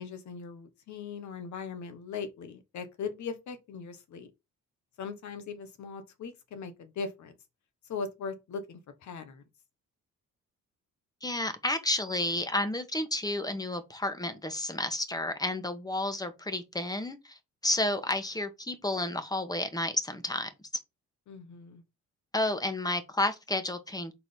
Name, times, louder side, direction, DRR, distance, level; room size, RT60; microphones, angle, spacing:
voice 1, 0.0-4.3 5.0-7.3 7.9-9.4 21.3-21.8, left 5 dB, 70° left, 1.4 m, -39 dB
voice 2, 11.2-20.5 22.3-24.1, left 1 dB, 10° left, 1.3 m, -31 dB
4.7 x 3.9 x 5.2 m
cardioid pair, 90°, 30 cm